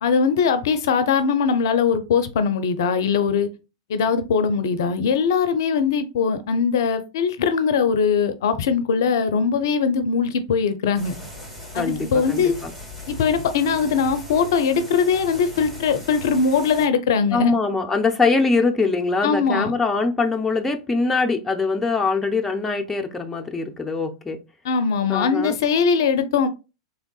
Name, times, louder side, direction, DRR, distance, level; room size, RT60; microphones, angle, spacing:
voice 1, 0.0-3.5 3.9-11.2 11.7-12.5 13.1-17.6 19.2-19.7 24.6-26.5, left 6 dB, 65° left, 0.5 m, -21 dB
sound 1, 10.9-16.9, left 1 dB, 15° right, 1.9 m, -38 dB
voice 2, 11.7-12.7 17.3-24.4 25.1-25.6, left 4 dB, 10° left, 0.6 m, -23 dB
3.5 x 3.3 x 2.2 m
figure-of-eight pair, 95°, 2 cm